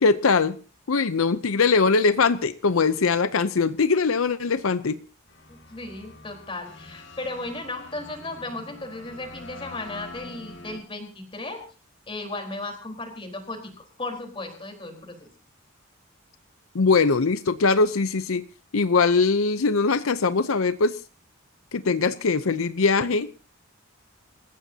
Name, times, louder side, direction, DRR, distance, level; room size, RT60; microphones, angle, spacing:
voice 1, 0.0-0.6 0.9-5.0 16.7-18.4 18.7-21.0 21.7-23.3, left 4 dB, 85° left, 13 dB, 0.7 m, -21 dB
sound 1, 5.3-10.8, left 2 dB, 60° left, 2.5 m, -45 dB
voice 2, 5.5-11.6 12.1-15.3, left 2 dB, 25° left, 3 dB, 4.1 m, -35 dB
27.5 x 15.0 x 2.8 m, 0.34 s
head